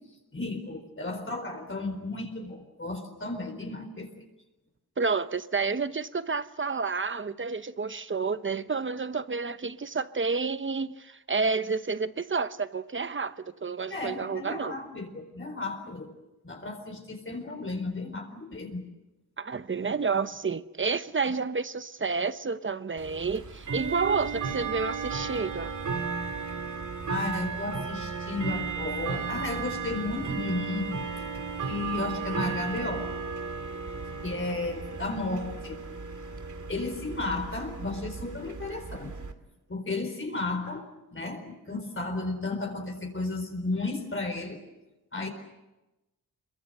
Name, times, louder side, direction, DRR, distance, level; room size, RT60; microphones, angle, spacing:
voice 1, 0.3-4.1 13.9-16.1 16.4-18.9 27.1-31.0 31.7-33.1 34.2-35.8 36.7-39.1 39.7-40.8 41.1-44.6 45.1-45.3, left 2 dB, 35° left, 4.4 m, -33 dB
voice 2, 5.0-14.8 19.4-25.8, right 4 dB, 30° right, 0.9 m, -30 dB
Bell / Tick-tock, 23.0-39.3, right 5 dB, 50° right, 2.4 m, -35 dB
27.0 x 23.0 x 7.8 m
wide cardioid pair, 100°, 37 cm